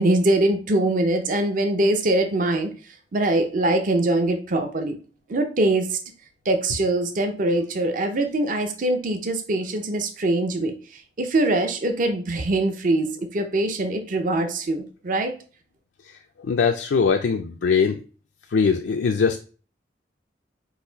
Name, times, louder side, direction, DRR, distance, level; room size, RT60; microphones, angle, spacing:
voice 1, 0.0-2.7 3.1-5.0 5.3-6.0 6.5-10.7 11.2-15.3, right 2 dB, 50° right, 6 dB, 0.5 m, -23 dB
voice 2, 16.4-18.0 18.5-19.4, left 5 dB, 85° left, 4 dB, 0.4 m, -21 dB
4.0 x 2.5 x 3.9 m, 0.37 s
head